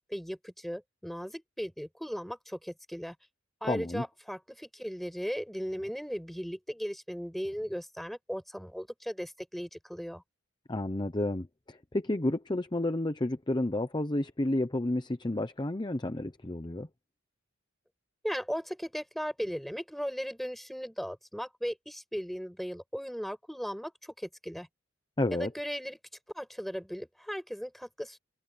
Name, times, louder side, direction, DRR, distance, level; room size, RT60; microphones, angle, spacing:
voice 1, 0.1-3.2 3.6-10.2 18.2-24.7 25.3-26.0 26.3-28.2, equal, ahead, 7.4 m, -37 dB
voice 2, 3.7-4.0 10.7-16.9 25.2-25.5, left 1 dB, 20° left, 0.8 m, -31 dB
head